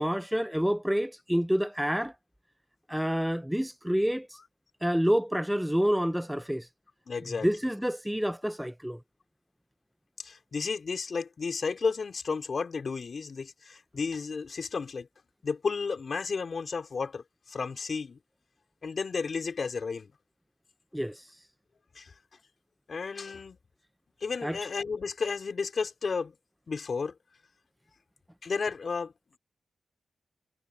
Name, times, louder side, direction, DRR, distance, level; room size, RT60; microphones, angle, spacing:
voice 1, 0.0-2.1 2.9-4.4 4.8-6.7 7.4-9.0 20.9-21.4 24.4-24.6, equal, 5° right, 0.5 m, -28 dB
voice 2, 7.1-7.5 10.2-15.1 15.4-18.2 18.8-20.1 21.9-22.1 22.9-23.6 24.2-26.3 26.7-27.1 28.4-29.1, left 5 dB, 55° left, 4.3 m, -32 dB
cardioid pair, 65°, 0 cm